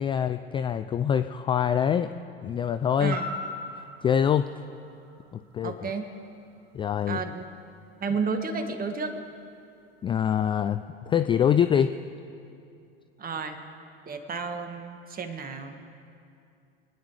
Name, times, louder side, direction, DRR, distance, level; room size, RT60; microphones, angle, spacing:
voice 1, 0.0-2.1 2.4-3.2 4.0-4.5 5.3-5.9 6.7-7.3 10.0-12.0, left 8 dB, 15° left, 11 dB, 0.3 m, -25 dB
sound 1, 3.1-7.2 7.6-7.7, left 1 dB, 75° right, 3.0 m, -40 dB
voice 2, 5.6-6.1 7.1-7.4 8.0-9.2 13.2-13.6 14.1-15.8, right 4 dB, 30° right, 7 dB, 1.6 m, -32 dB
25.5 x 10.0 x 4.8 m, 2.5 s
hypercardioid pair, 85°, 31 cm